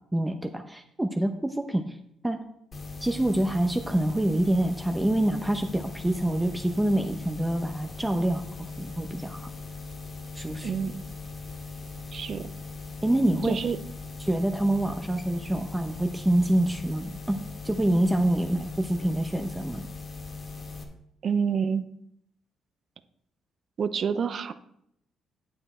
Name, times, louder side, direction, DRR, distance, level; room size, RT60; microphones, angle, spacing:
voice 1, 0.1-2.0 2.2-2.4 3.0-8.5 8.8-9.5 10.4-10.7 13.0-13.7 14.2-19.8, right 1 dB, 10° right, 5 dB, 0.9 m, -26 dB
sound 1, 2.7-20.8, left 3 dB, 40° left, 2.0 m, -40 dB
voice 2, 10.6-11.0 12.1-12.5 13.4-13.8 21.2-21.8 23.8-24.5, right 6 dB, 55° right, 12 dB, 0.7 m, -27 dB
8.8 x 8.0 x 4.4 m, 0.74 s
cardioid pair, 90°, 0 cm